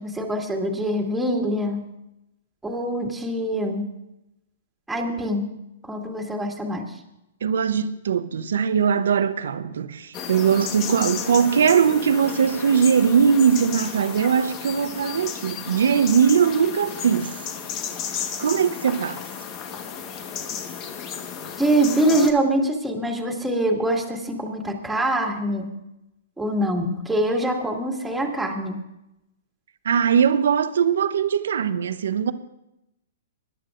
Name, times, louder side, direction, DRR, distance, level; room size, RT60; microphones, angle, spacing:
voice 1, 0.0-1.9 2.6-3.9 4.9-5.5 5.9-6.8 21.6-25.7 26.4-28.8, right 1 dB, 5° right, 2.3 m, -24 dB
voice 2, 7.4-17.4 18.4-19.2 29.8-32.3, right 7 dB, 70° right, 0.8 m, -20 dB
sound 1, 10.1-22.3, left 7 dB, 35° left, 1.3 m, -33 dB
24.5 x 11.5 x 2.6 m
hypercardioid pair, 125°, 0 cm